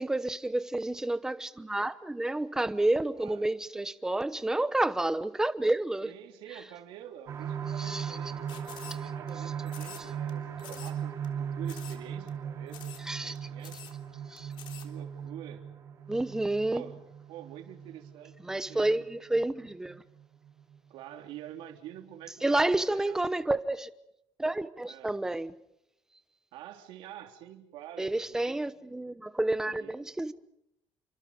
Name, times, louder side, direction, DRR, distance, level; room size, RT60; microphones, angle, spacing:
voice 1, 0.0-6.1 7.8-8.2 13.0-13.4 14.3-14.5 16.1-16.8 18.4-20.0 22.4-23.9 24.4-25.5 28.0-30.3, right 2 dB, 5° right, 1.0 m, -30 dB
voice 2, 3.1-3.5 6.0-12.8 13.2-13.8 14.8-15.6 16.7-17.0 17.3-19.3 20.9-23.2 24.9-25.2 26.5-28.9 29.7-30.0, right 11 dB, 85° right, 3.5 m, -47 dB
sound 1, 7.3-20.7 21.2-21.3 21.7-21.8, right 8 dB, 35° right, 4.0 m, -38 dB
sound 2, 8.5-9.3 9.7-10.3 10.6-11.0 11.2-11.3 11.7-12.0 12.3-12.4 12.7-13.1 13.3-13.4 13.6-14.0 14.4-14.9, left 10 dB, 70° left, 3.6 m, -47 dB
29.0 x 25.5 x 5.2 m
cardioid pair, 175°, 9 cm